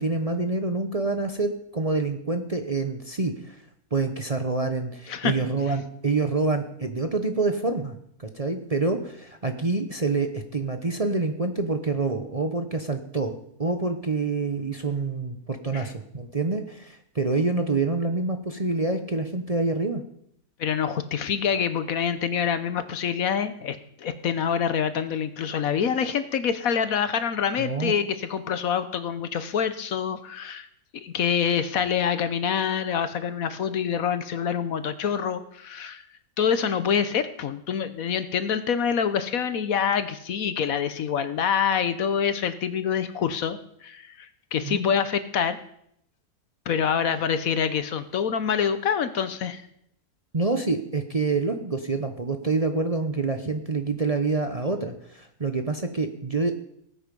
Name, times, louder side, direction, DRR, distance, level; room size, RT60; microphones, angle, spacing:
voice 1, 0.0-3.6 3.9-7.9 8.2-13.3 13.6-20.0 27.6-27.9 44.6-44.8 50.3-56.5, right 3 dB, 30° right, 6 dB, 0.8 m, -27 dB
voice 2, 20.6-30.7 30.9-36.0 36.4-45.6 46.7-49.6, left 7 dB, 65° left, 12 dB, 1.3 m, -26 dB
19.0 x 8.6 x 5.3 m, 0.72 s
omnidirectional pair, 1.6 m